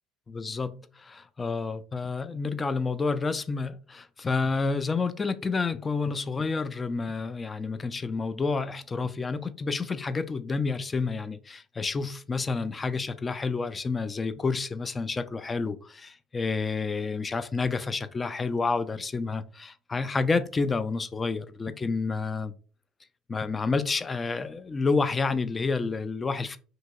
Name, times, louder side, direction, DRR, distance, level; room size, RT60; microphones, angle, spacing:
voice 1, 0.3-22.5 23.3-26.6, left 4 dB, 25° left, 0.3 m, -29 dB
2.8 x 2.7 x 2.3 m
hypercardioid pair, 70°, 0 cm